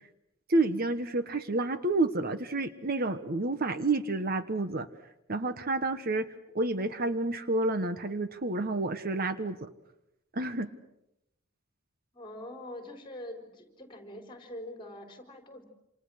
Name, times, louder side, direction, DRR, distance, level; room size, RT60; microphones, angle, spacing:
voice 1, 0.5-4.9 5.3-6.3 6.5-9.7 10.3-10.7, right 2 dB, 45° right, 11 dB, 1.2 m, -29 dB
voice 2, 12.1-15.6, left 1 dB, 25° left, 6 dB, 4.4 m, -44 dB
28.0 x 27.5 x 6.4 m, 0.85 s
head